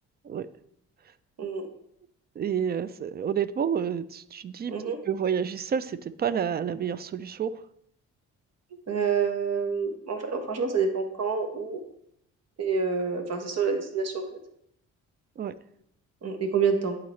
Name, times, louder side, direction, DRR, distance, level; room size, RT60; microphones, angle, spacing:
voice 1, 2.4-4.7 5.1-7.6 15.4-15.5, right 8 dB, 35° right, 15 dB, 0.4 m, -29 dB
voice 2, 8.9-11.8 12.6-14.4 16.2-17.0, right 5 dB, 55° right, 5 dB, 1.3 m, -27 dB
11.0 x 3.9 x 3.2 m, 0.73 s
cardioid pair, 90°, 30 cm